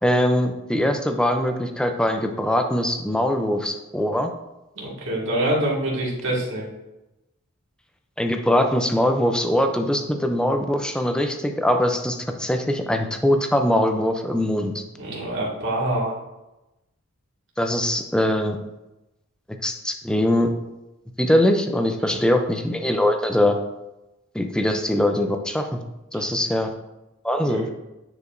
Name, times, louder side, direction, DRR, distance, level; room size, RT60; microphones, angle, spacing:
voice 1, 0.0-4.3 8.2-14.8 17.6-18.6 19.6-20.5 21.2-23.6 24.3-25.8 26.1-26.7 27.2-27.7, left 1 dB, 5° left, 5 dB, 0.5 m, -22 dB
voice 2, 4.8-6.7 15.0-16.1 22.0-22.2 26.1-26.3 27.4-27.7, right 1 dB, 60° right, -4 dB, 2.0 m, -26 dB
9.6 x 4.8 x 2.6 m, 0.97 s
head